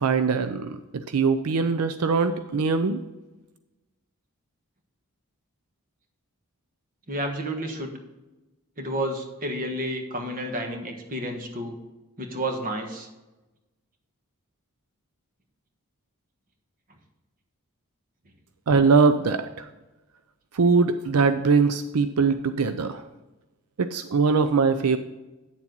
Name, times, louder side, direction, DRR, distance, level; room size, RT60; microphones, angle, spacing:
voice 1, 0.0-3.0 18.7-19.7 20.5-23.0 23.8-25.0, right 4 dB, 85° right, 10 dB, 0.5 m, -22 dB
voice 2, 7.1-7.9 8.8-11.8 12.2-13.1, right 1 dB, 40° right, 4 dB, 1.4 m, -30 dB
9.6 x 7.3 x 4.0 m, 1.1 s
head